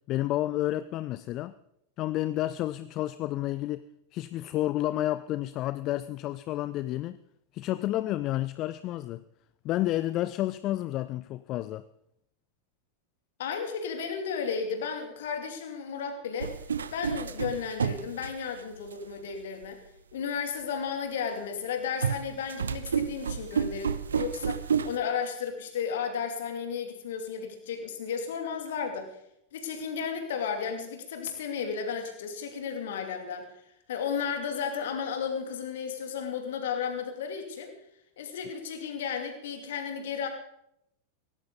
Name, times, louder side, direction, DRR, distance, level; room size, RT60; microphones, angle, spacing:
voice 1, 0.1-1.5 2.0-7.2 7.5-9.2 9.6-11.9, left 15 dB, 35° left, 0.5 m, -30 dB
voice 2, 13.4-16.6 16.9-19.8 20.1-29.2 29.5-33.5 33.9-37.7 38.2-40.3, left 6 dB, 60° left, 2.8 m, -33 dB
sound 1, 16.4-18.9 19.6-19.7 22.0-25.0, right 6 dB, 70° right, 0.7 m, -30 dB
17.5 x 16.5 x 4.0 m
figure-of-eight pair, 90°, 0 cm